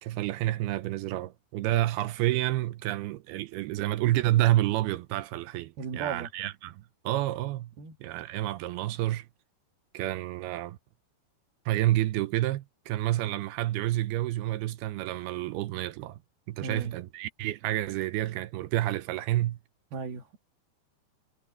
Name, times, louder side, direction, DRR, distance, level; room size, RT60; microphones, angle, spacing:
voice 1, 0.0-7.7 8.0-9.3 9.9-10.8 11.7-16.2 16.5-19.6, right 15 dB, 85° right, 2.5 m, -29 dB
voice 2, 5.8-6.3 7.8-8.0 16.6-16.9 19.9-20.4, right 5 dB, 65° right, 3.6 m, -35 dB
omnidirectional pair, 4.9 m